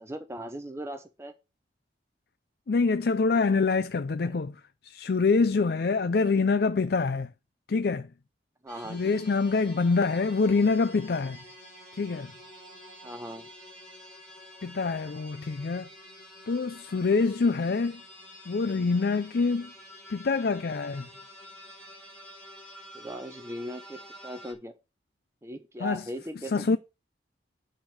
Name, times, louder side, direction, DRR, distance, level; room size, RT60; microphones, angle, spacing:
voice 1, 0.0-1.3 4.2-4.4 8.6-9.1 13.0-13.5 22.9-24.7 25.4-26.8, equal, 15° right, 0.8 m, -39 dB
voice 2, 2.7-4.5 4.8-7.3 7.7-8.1 8.9-11.4 11.9-12.3 14.6-15.9 16.5-18.0 18.5-19.7 20.1-21.1 25.8-26.1 26.4-26.8, left 4 dB, 55° left, 0.5 m, -25 dB
sound 1, 8.7-24.5, left 1 dB, 5° left, 4.7 m, -49 dB
8.8 x 5.1 x 7.2 m
head